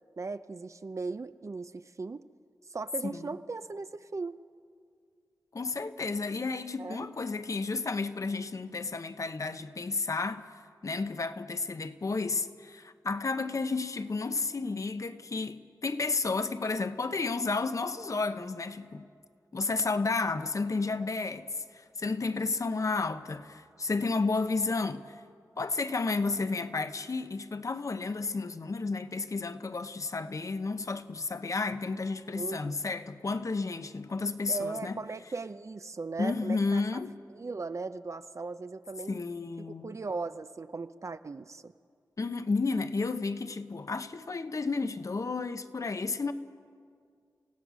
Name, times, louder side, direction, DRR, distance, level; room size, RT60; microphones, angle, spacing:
voice 1, 0.2-2.3 2.6-4.4 6.8-7.1 32.3-32.8 34.5-36.8 37.3-39.2 39.6-41.7, right 3 dB, 45° right, 0.5 m, -38 dB
voice 2, 5.5-10.5 10.8-19.1 19.5-21.5 21.7-25.2 25.6-35.0 36.2-37.1 39.1-39.9 42.2-46.3, left 3 dB, 50° left, 0.9 m, -32 dB
28.0 x 16.5 x 6.2 m
wide cardioid pair, 85°, 7 cm